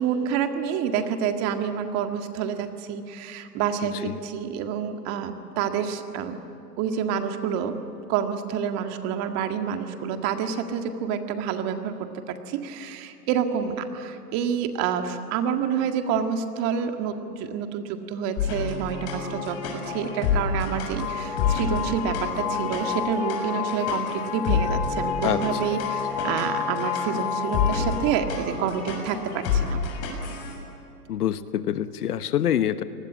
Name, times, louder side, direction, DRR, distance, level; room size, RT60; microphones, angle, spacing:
voice 1, 0.0-6.4 6.8-7.8 8.1-19.6 19.9-29.8, right 7 dB, 35° right, 6 dB, 1.9 m, -28 dB
voice 2, 3.8-4.2 25.2-25.4 31.1-32.8, left 10 dB, 65° left, 12 dB, 1.3 m, -26 dB
sound 1, 18.4-30.5, left 5 dB, 40° left, 6.9 m, -29 dB
sound 2, 21.0-28.5, left 6 dB, 90° left, 3.4 m, -30 dB
29.0 x 20.0 x 8.6 m, 2.7 s
hypercardioid pair, 130°, 48 cm